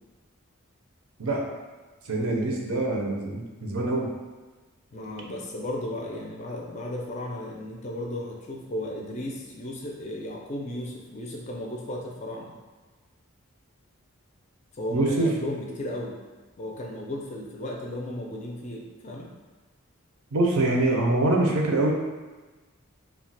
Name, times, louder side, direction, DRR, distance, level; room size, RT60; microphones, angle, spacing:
voice 1, 2.1-4.1 14.9-15.3 20.3-21.9, right 2 dB, 80° right, -1 dB, 0.5 m, -24 dB
voice 2, 4.9-12.5 14.7-16.1 16.6-19.3, left 1 dB, 35° left, -1 dB, 0.4 m, -35 dB
2.3 x 2.1 x 3.9 m, 1.3 s
head